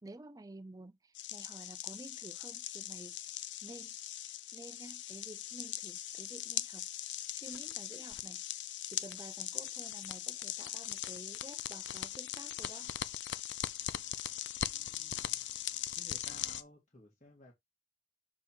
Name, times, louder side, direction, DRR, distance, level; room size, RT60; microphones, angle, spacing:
voice 1, 0.0-4.0 4.5-6.9 7.3-8.4 8.9-12.9, right 2 dB, 20° right, 0.4 m, -51 dB
sound 1, 1.1-16.6, left 12 dB, 80° left, 0.5 m, -40 dB
voice 2, 14.6-15.4 15.9-17.5, left 1 dB, 40° left, 1.8 m, -57 dB
7.1 x 3.5 x 4.4 m
head